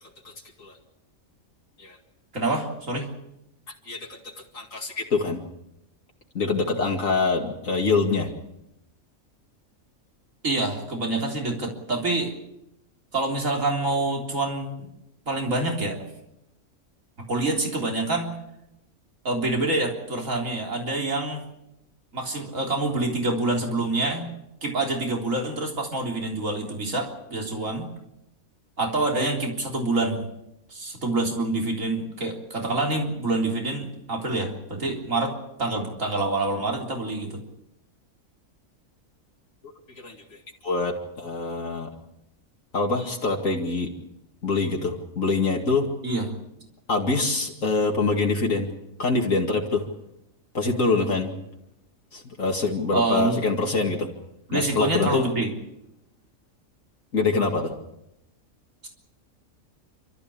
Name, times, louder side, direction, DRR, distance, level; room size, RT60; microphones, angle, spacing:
voice 1, 2.3-3.1 10.4-12.3 13.1-14.9 15.3-16.0 17.3-18.3 19.2-21.5 22.1-24.3 24.6-27.9 28.8-30.3 30.7-35.3 35.6-37.4 46.0-46.3 52.9-53.4 54.5-55.5, right 2 dB, 70° right, 1 dB, 4.1 m, -26 dB
voice 2, 3.9-5.4 6.3-8.3 40.0-40.4 40.6-41.9 42.7-43.9 44.4-45.9 46.9-48.7 49.0-49.9 50.5-51.3 52.1-54.1 54.5-55.3 57.1-57.7, left 3 dB, 70° left, 0 dB, 2.6 m, -25 dB
28.5 x 13.5 x 8.7 m, 0.86 s
omnidirectional pair, 1.4 m